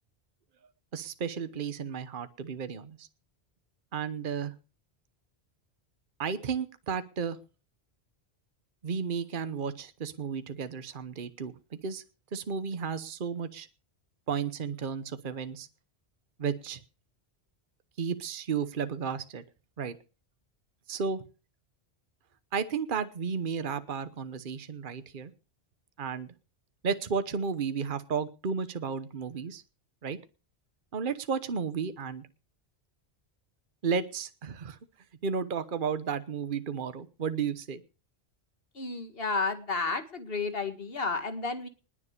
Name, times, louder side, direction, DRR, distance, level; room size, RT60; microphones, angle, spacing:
voice 1, 0.9-3.1 3.9-4.5 6.2-7.4 8.8-11.5 11.8-12.0 12.3-13.7 14.3-15.7 16.4-16.8 18.0-19.4 19.8-20.0 20.9-21.2 22.5-25.3 26.0-26.3 26.8-29.6 30.0-30.2 30.9-32.3 33.8-34.8 35.2-37.8, right 6 dB, 55° right, 12 dB, 1.1 m, -33 dB
voice 2, 38.7-41.7, left 4 dB, 60° left, 9 dB, 2.2 m, -32 dB
20.0 x 7.4 x 6.7 m, 0.36 s
omnidirectional pair, 1.1 m